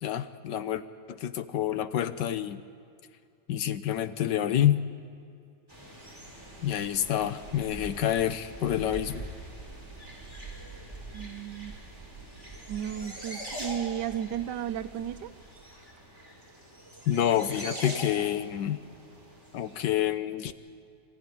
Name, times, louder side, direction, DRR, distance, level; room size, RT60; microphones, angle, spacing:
voice 1, 0.0-0.8 1.1-2.6 3.5-4.8 6.6-9.2 17.1-18.8 19.5-20.5, left 11 dB, 85° left, 11 dB, 1.5 m, -28 dB
sound 1, 5.7-19.9, right 1 dB, 10° right, 4.8 m, -43 dB
voice 2, 11.1-11.8 12.7-15.3, right 10 dB, 80° right, 12 dB, 1.4 m, -34 dB
25.0 x 15.0 x 9.9 m, 2.5 s
omnidirectional pair, 1.9 m